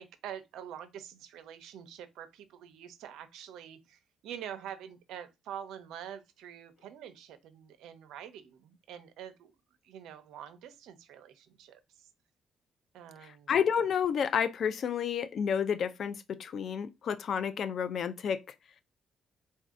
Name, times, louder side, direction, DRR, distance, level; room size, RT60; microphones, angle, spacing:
voice 1, 0.0-9.5 9.8-12.1 12.9-13.6, right 9 dB, 85° right, 0.6 m, -46 dB
voice 2, 13.5-18.5, left 7 dB, 60° left, 0.5 m, -30 dB
4.1 x 2.7 x 3.5 m
cardioid pair, 90°, 0 cm